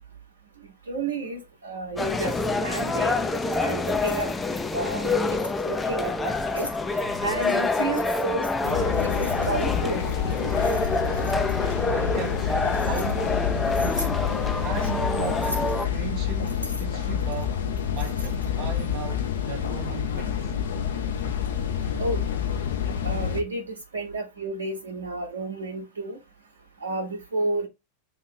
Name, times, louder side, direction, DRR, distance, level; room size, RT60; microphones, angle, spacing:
voice 1, 0.9-2.4 2.6-3.2 3.6-4.3 4.7-5.4 5.6-6.7 7.2-10.6 22.0-22.2 23.0-26.2 26.8-27.7, right 2 dB, 70° right, 0.9 m, -31 dB
sound 1, 2.0-15.9, left 3 dB, 10° left, 0.4 m, -27 dB
Keys jangling, 3.3-4.3 5.0-5.6 6.3-6.8 7.4-8.1 8.9-9.8 10.3-11.7 12.4-13.1 13.7-14.2 15.2-15.8 16.4-18.6, left 1 dB, 90° left, 0.9 m, -40 dB
sound 2, 8.6-23.4, left 8 dB, 60° left, 0.7 m, -28 dB
voice 2, 11.9-14.1 14.6-17.6 17.9-20.6, right 9 dB, 40° right, 0.5 m, -37 dB
2.9 x 2.7 x 4.3 m
figure-of-eight pair, 90°, 0 cm